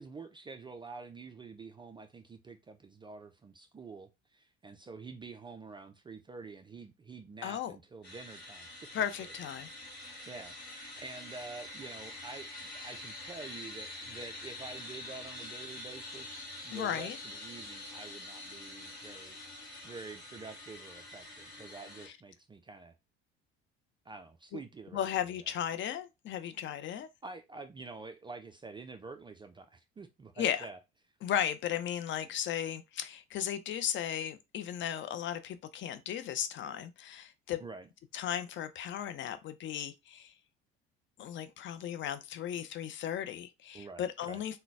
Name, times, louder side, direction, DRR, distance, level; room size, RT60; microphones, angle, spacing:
voice 1, 0.0-8.9 9.2-9.3 10.3-10.5 11.0-16.4 16.6-22.9 24.1-25.0 25.4-25.5 27.2-30.8 37.6-37.9 43.7-44.4, right 4 dB, 15° right, 0.3 m, -48 dB
voice 2, 7.4-7.8 8.9-9.7 16.7-17.2 24.5-24.6 24.9-27.1 30.4-30.7 31.2-37.6 38.1-40.3 41.2-44.6, left 10 dB, 40° left, 0.5 m, -35 dB
sound 1, 8.0-22.1, left 2 dB, 90° left, 1.0 m, -46 dB
3.8 x 2.2 x 3.3 m
figure-of-eight pair, 60°, 31 cm